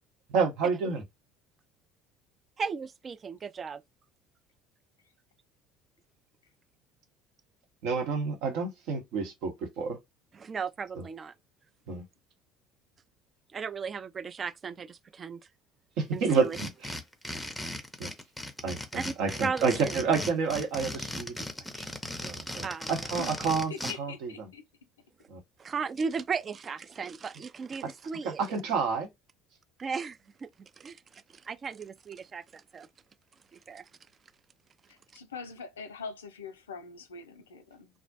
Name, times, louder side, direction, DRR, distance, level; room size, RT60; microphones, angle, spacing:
voice 1, 0.3-1.0 7.8-10.0 11.0-11.1 11.9-12.0 16.0-16.9 18.0-18.1 18.6-21.5 21.8-21.9 22.2-23.7 24.0-24.5 25.3-25.4 27.8-27.9 28.2-29.1, right 5 dB, 65° right, 0.8 m, -29 dB
voice 2, 2.6-3.8 10.3-11.3 13.5-15.4 16.1-16.6 18.9-19.1 19.4-20.0 22.6-22.9 25.6-28.4 29.8-32.9 33.5-33.9, right 5 dB, 35° right, 0.3 m, -36 dB
sound 1, 16.3-23.9, left 1 dB, 5° left, 0.6 m, -37 dB
voice 3, 23.2-24.6 34.9-37.9, left 5 dB, 85° left, 0.4 m, -43 dB
2.3 x 2.0 x 2.6 m
hypercardioid pair, 65°, 0 cm